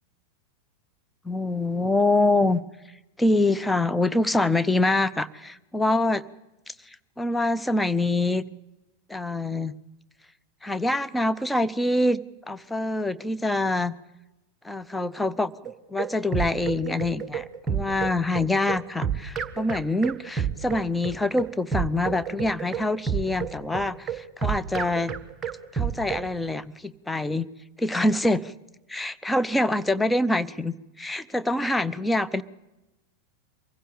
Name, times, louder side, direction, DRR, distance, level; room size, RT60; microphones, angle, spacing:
voice 1, 1.2-2.6 3.2-6.2 7.2-8.4 9.1-9.7 10.6-12.2 12.5-13.9 14.6-15.5 15.9-25.1 25.7-27.5 27.8-28.5 28.9-32.4, left 2 dB, 5° left, 12 dB, 0.7 m, -25 dB
sound 1, 15.6-26.3, right 7 dB, 20° right, 1.4 m, -30 dB
24.0 x 16.0 x 8.6 m, 1.0 s
figure-of-eight pair, 90°, 0 cm